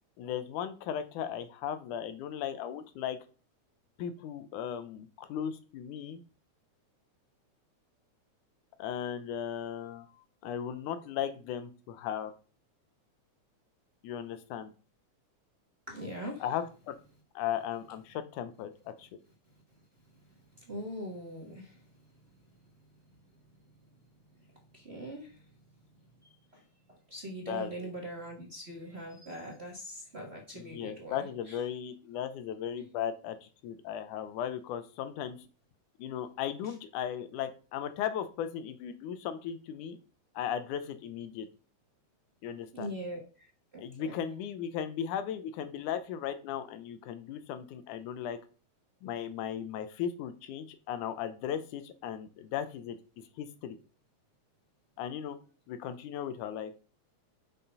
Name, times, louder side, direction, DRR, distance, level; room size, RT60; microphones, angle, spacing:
voice 1, 0.2-3.2 4.0-6.2 8.8-10.1 10.4-12.3 14.0-14.7 16.4-16.9 17.4-19.1 27.5-27.9 30.5-35.4 36.0-40.0 40.4-41.5 42.4-42.9 43.8-48.4 49.0-53.0 53.4-53.8 55.0-55.4 55.7-56.7, left 9 dB, 90° left, 10 dB, 2.4 m, -36 dB
voice 2, 15.9-16.4 20.7-21.8 24.7-25.4 26.2-26.6 27.1-31.2 31.5-31.6 42.7-44.2, right 1 dB, 30° right, -1 dB, 1.2 m, -42 dB
6.7 x 5.9 x 5.4 m, 0.37 s
omnidirectional pair, 3.4 m